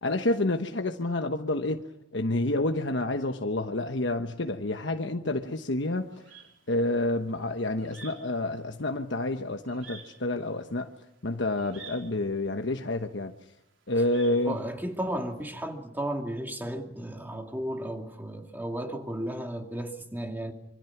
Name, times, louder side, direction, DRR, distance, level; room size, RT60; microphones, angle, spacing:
voice 1, 0.0-1.8 2.1-6.1 6.7-10.9 11.2-13.3 13.9-14.6, left 2 dB, 70° left, 1.2 m, -29 dB
sound 1, 5.5-15.4, right 5 dB, 85° right, 4.1 m, -50 dB
voice 2, 14.4-20.5, right 1 dB, 10° right, 2.5 m, -34 dB
27.0 x 25.0 x 6.0 m
head